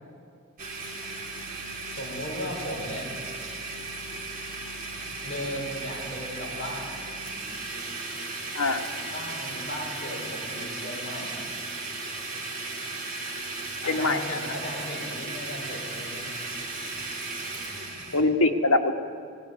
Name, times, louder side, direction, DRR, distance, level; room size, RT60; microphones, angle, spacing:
Domestic sounds home sounds, 0.6-18.2, right 3 dB, 40° right, 3.2 m, -36 dB
voice 1, 2.0-3.1 5.2-7.0 8.9-11.5 13.8-16.3, equal, 35° left, -5 dB, 5.4 m, -36 dB
voice 2, 13.9-14.4 18.1-18.9, left 2 dB, 85° left, 2 dB, 1.8 m, -23 dB
18.5 x 17.5 x 9.8 m, 2.2 s
head